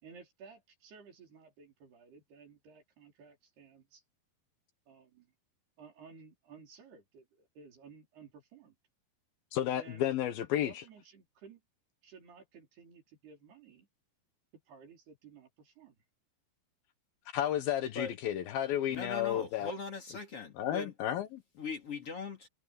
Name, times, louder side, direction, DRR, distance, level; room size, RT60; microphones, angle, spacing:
voice 1, 0.0-4.0 4.9-5.3 5.8-8.8 9.7-10.1 10.4-11.6 12.0-13.9 14.7-16.0, right 5 dB, 75° right, 6.8 m, -55 dB
voice 2, 9.5-10.8 17.3-19.7 20.6-21.4, left 11 dB, 70° left, 2.7 m, -32 dB
voice 3, 18.9-20.9 21.6-22.5, left 4 dB, 40° left, 3.2 m, -40 dB
omnidirectional pair, 4.7 m